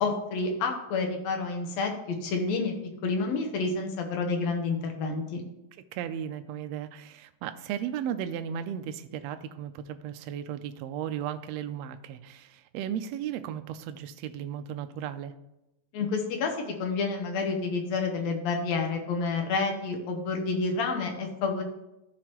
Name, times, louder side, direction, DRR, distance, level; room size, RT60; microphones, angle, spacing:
voice 1, 0.0-2.7 3.0-5.4 15.9-21.6, left 4 dB, 65° left, 3 dB, 2.2 m, -29 dB
voice 2, 5.9-15.3, right 9 dB, 85° right, 9 dB, 1.5 m, -35 dB
14.0 x 4.7 x 3.0 m, 0.92 s
omnidirectional pair, 3.6 m